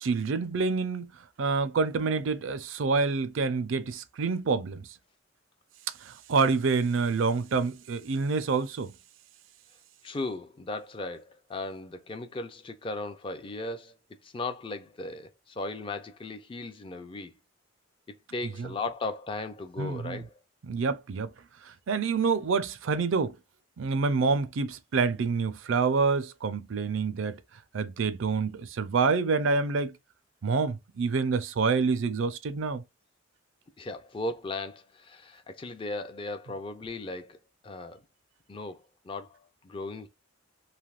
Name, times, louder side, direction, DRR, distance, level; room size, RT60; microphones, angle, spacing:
voice 1, 0.0-1.1 1.4-4.9 6.0-8.9 18.6-18.7 19.8-20.2 20.6-21.3 21.6-23.4 23.8-27.4 27.7-29.9 30.4-32.8, right 4 dB, 70° right, 0.4 m, -27 dB
voice 2, 10.0-13.9 14.2-17.3 18.3-20.3 33.8-37.4 37.6-38.0 38.5-40.1, left 2 dB, 25° left, 0.4 m, -37 dB
3.3 x 2.7 x 2.4 m
head